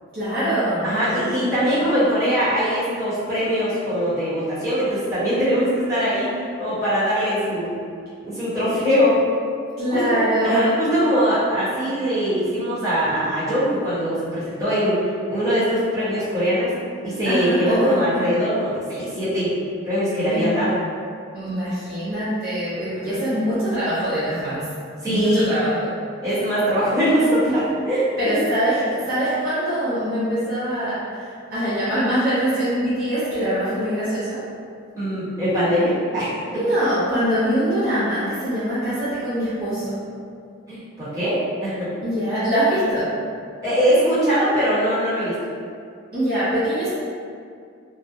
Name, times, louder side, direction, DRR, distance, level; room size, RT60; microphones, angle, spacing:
voice 1, 0.1-0.9 9.8-10.7 17.2-17.9 20.3-20.5 21.3-24.7 25.1-25.9 27.4-27.6 28.2-34.4 36.5-39.9 42.0-43.1 46.1-46.9, equal, 45° right, -12 dB, 0.6 m, -23 dB
voice 2, 0.8-6.3 6.6-7.7 8.2-9.2 9.9-10.2 10.4-16.7 17.0-19.5 19.8-20.8 22.9-23.2 25.0-25.4 26.2-28.4 35.0-36.6 40.7-41.9 43.6-45.3, equal, 15° right, -14 dB, 0.9 m, -22 dB
2.3 x 2.0 x 2.6 m, 2.3 s
head